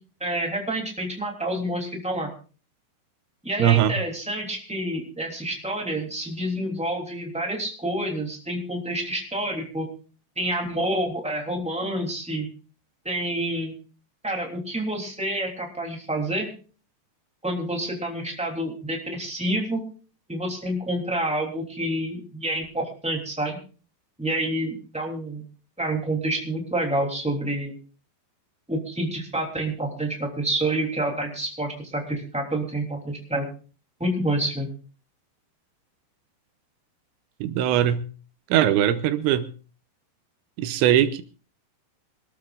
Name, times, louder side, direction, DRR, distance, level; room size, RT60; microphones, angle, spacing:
voice 1, 0.2-2.3 3.4-9.9 10.4-12.5 13.0-13.7 14.2-16.5 17.4-19.8 20.3-23.6 24.2-25.4 25.8-27.8 28.7-33.5 34.0-34.7, right 1 dB, ahead, 0 dB, 2.1 m, -28 dB
voice 2, 3.6-4.0 37.4-38.0 38.5-39.5 40.6-41.2, right 11 dB, 80° right, 11 dB, 3.1 m, -20 dB
26.0 x 13.5 x 2.5 m, 0.37 s
omnidirectional pair, 5.2 m